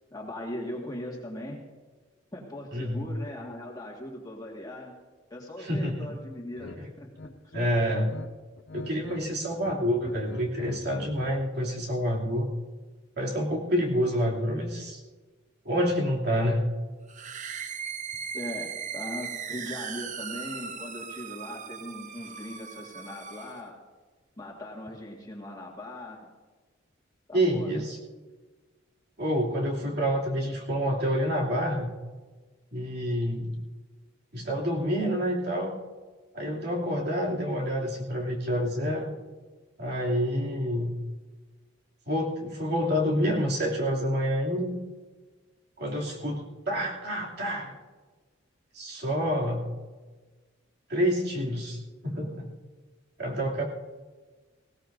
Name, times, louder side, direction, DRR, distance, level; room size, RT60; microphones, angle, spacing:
voice 1, 0.1-1.6 2.3-5.0 5.3-7.5 18.3-23.7 24.4-26.3 27.3-27.7, left 1 dB, 20° left, -2 dB, 1.7 m, -39 dB
voice 2, 2.7-3.1 5.6-6.1 6.8-6.9 7.5-8.1 8.7-12.5 13.2-15.0 15.6-16.6 27.3-28.0 29.2-31.9 32.7-33.6 34.3-35.7 36.3-39.1 39.8-41.0 42.1-44.8 45.8-47.7 48.7-49.7 50.9-52.5 53.2-53.6, equal, 55° right, -2 dB, 2.6 m, -28 dB
sound 1, 6.6-6.8 7.1-8.3 8.6-9.2 9.5-11.4, left 2 dB, 60° left, 0.9 m, -42 dB
sound 2, 17.1-23.7, right 7 dB, 40° right, 0.6 m, -38 dB
19.5 x 17.5 x 2.6 m, 1.3 s
head